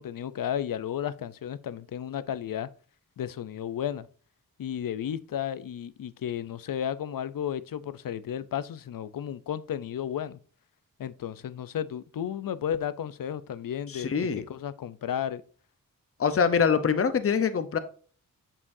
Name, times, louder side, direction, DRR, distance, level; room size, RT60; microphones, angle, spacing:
voice 1, 0.0-2.7 3.2-4.1 4.6-10.4 11.0-15.4, left 9 dB, 70° left, 0.6 m, -33 dB
voice 2, 13.9-14.4 16.2-17.8, left 6 dB, 40° left, 0.8 m, -24 dB
8.6 x 6.8 x 2.7 m
wide cardioid pair, 165°, 34 cm